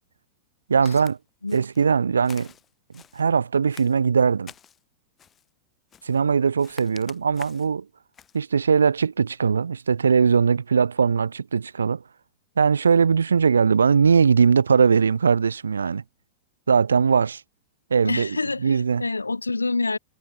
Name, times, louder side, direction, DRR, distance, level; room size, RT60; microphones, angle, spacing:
voice 1, 0.7-1.2 1.5-2.5 3.1-4.5 6.0-7.8 8.3-12.0 12.6-16.0 16.7-17.4 17.9-19.0, right 6 dB, 80° right, 0.9 m, -20 dB
Walk footsteps, 0.9-1.2 1.5-1.9 2.2-3.3 3.7-4.8 5.2-5.5 5.9-6.2 6.6-7.7 8.1-8.4, left 8 dB, 25° left, 4.2 m, -47 dB
voice 2, 18.0-20.0, left 3 dB, 90° left, 0.5 m, -27 dB
figure-of-eight pair, 95°, 0 cm